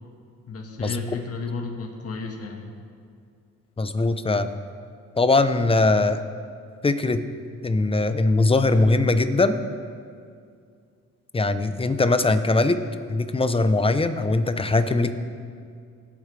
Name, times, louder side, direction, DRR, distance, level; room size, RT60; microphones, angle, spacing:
voice 1, 0.5-2.7, left 4 dB, 50° left, 1 dB, 1.7 m, -33 dB
voice 2, 3.8-4.6 5.2-6.2 6.8-7.3 7.6-9.5 11.3-12.8 13.1-15.1, left 2 dB, 20° left, 10 dB, 0.8 m, -21 dB
20.5 x 9.0 x 3.4 m, 2.3 s
cardioid pair, 90°, 30 cm